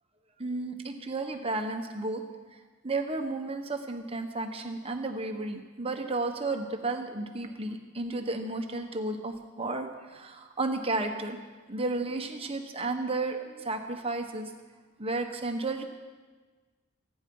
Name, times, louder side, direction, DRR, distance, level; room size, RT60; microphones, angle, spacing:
voice 1, 0.4-2.2 2.8-11.4 11.7-14.5 15.0-15.8, right 2 dB, 25° right, 5 dB, 1.3 m, -33 dB
25.0 x 9.9 x 5.5 m, 1.4 s
head